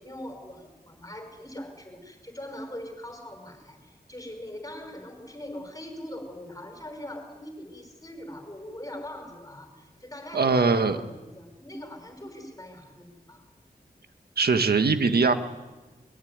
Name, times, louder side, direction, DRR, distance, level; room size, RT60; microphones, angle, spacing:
voice 1, 0.0-13.4, left 1 dB, 20° left, 5 dB, 5.7 m, -41 dB
voice 2, 10.3-11.0 14.4-15.3, right 4 dB, 85° right, 7 dB, 1.8 m, -21 dB
23.0 x 22.0 x 9.7 m, 1.2 s
wide cardioid pair, 85°, 16 cm